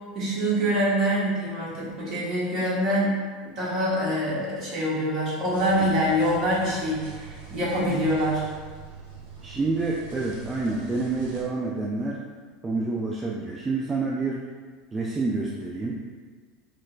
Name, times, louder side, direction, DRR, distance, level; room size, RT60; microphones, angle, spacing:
voice 1, 0.1-3.2 3.6-8.4, equal, 50° right, -8 dB, 1.4 m, -25 dB
sound 1, 5.5-11.4, right 5 dB, 70° right, 0.8 m, -43 dB
voice 2, 9.4-12.2 12.6-14.4 14.9-16.0, right 3 dB, 20° right, -3 dB, 0.3 m, -28 dB
4.3 x 2.1 x 2.4 m, 1.5 s
hypercardioid pair, 80°, 0 cm